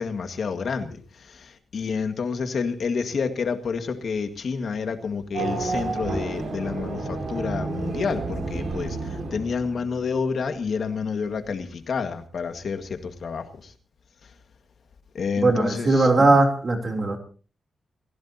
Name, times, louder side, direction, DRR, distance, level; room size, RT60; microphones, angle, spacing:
voice 1, 0.0-13.7 15.1-16.4, left 5 dB, 55° left, 1.9 m, -29 dB
Race car auto racing / Accelerating revving vroom, 5.3-10.0, right 3 dB, 80° right, 5.9 m, -30 dB
voice 2, 15.4-17.2, right 2 dB, 30° right, 3.5 m, -19 dB
29.0 x 16.0 x 2.9 m
wide cardioid pair, 170°, 0 cm